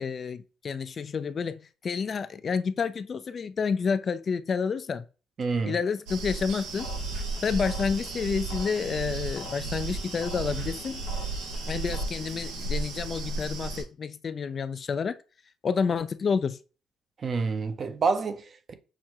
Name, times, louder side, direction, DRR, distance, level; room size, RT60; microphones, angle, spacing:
voice 1, 0.0-5.1 5.6-6.9 7.4-11.0 11.7-15.2 15.6-16.6, left 5 dB, 45° left, 0.3 m, -29 dB
voice 2, 5.4-5.8 17.2-18.7, right 4 dB, 50° right, 0.6 m, -28 dB
sound 1, 6.1-13.8, right 2 dB, 90° right, 0.8 m, -36 dB
sound 2, 6.7-12.0, right 3 dB, 85° left, 0.8 m, -36 dB
6.0 x 2.1 x 2.9 m
supercardioid pair, 70°, 0 cm